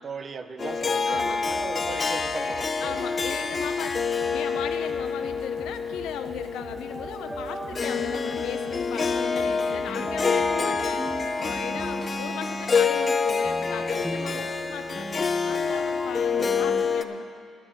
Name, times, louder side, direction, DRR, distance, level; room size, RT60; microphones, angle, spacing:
voice 1, 0.0-3.1 3.8-4.0 14.3-14.5, right 5 dB, 45° right, 10 dB, 0.7 m, -38 dB
Harp, 0.6-17.0, left 5 dB, 35° left, 0.6 m, -27 dB
voice 2, 1.1-1.4 2.8-3.9 4.3-11.0 11.4-17.3, left 8 dB, 90° left, 8 dB, 0.7 m, -37 dB
sound 1, 1.1-12.1, right 5 dB, 80° right, 1.1 m, -47 dB
sound 2, 6.5-16.8, right 1 dB, 5° right, 0.7 m, -38 dB
11.5 x 6.9 x 8.9 m, 2.4 s
cardioid pair, 90°, 0 cm